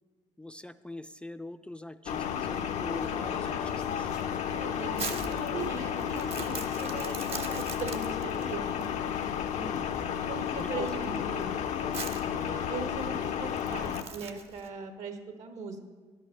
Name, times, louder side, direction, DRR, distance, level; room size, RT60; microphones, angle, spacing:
voice 1, 0.4-4.1 9.5-9.8 10.6-11.3, left 1 dB, 10° left, 10 dB, 0.3 m, -42 dB
sound 1, 2.1-14.0, left 8 dB, 85° left, 0.6 m, -32 dB
Crumpling crinkling, 4.2-14.7, right 5 dB, 55° right, 0.9 m, -42 dB
voice 2, 4.5-8.9 10.3-11.6 12.3-15.8, right 4 dB, 80° right, 8 dB, 1.2 m, -40 dB
10.5 x 5.5 x 7.6 m, 1.5 s
cardioid pair, 95°, 12 cm